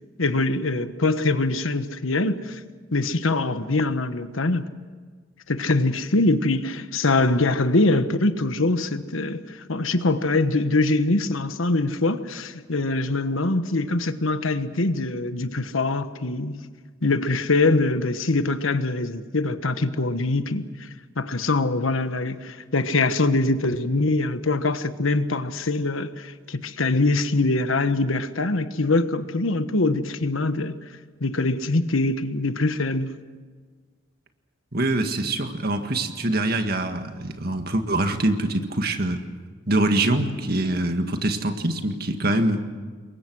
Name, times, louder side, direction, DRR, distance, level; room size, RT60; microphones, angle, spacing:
voice 1, 0.2-2.6 2.9-4.7 5.5-16.6 17.0-20.9 21.2-30.8 31.2-33.1, left 2 dB, 90° left, 1.3 m, -23 dB
voice 2, 34.7-39.2 39.7-42.6, right 1 dB, 50° right, 1.9 m, -24 dB
28.0 x 22.5 x 6.3 m
head